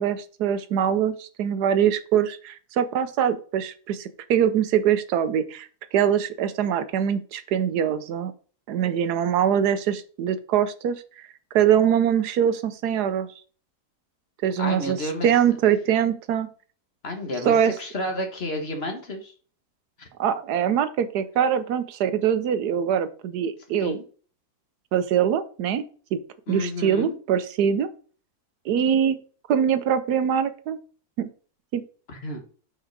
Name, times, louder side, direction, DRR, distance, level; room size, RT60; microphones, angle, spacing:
voice 1, 0.0-8.3 8.7-11.3 11.5-13.3 14.4-15.0 15.2-16.5 17.4-17.7 20.2-24.0 24.9-25.8 26.1-26.2 26.5-27.9 28.6-29.2 29.5-30.8 31.2-31.3 31.7-31.8, right 9 dB, 85° right, 12 dB, 1.2 m, -23 dB
voice 2, 14.6-15.3 17.0-19.3 20.0-20.1 23.8-24.0 26.5-27.2 32.1-32.4, left 1 dB, 45° left, 4 dB, 1.4 m, -31 dB
5.7 x 4.5 x 4.6 m, 0.40 s
omnidirectional pair, 1.7 m